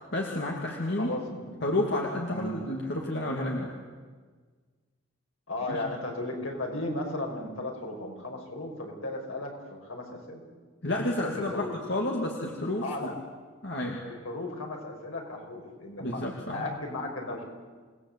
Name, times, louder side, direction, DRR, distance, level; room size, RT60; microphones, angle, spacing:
voice 1, 0.1-1.1 1.6-3.7 5.7-5.8 10.8-11.6 11.9-13.1 13.6-14.0 16.0-16.7, left 1 dB, 55° left, -1 dB, 2.7 m, -30 dB
voice 2, 1.0-1.5 2.3-2.6 5.5-10.4 11.4-11.7 12.8-13.2 14.0-16.2 16.5-17.4, left 2 dB, 80° left, 1 dB, 5.7 m, -35 dB
28.0 x 19.0 x 8.3 m, 1.5 s
head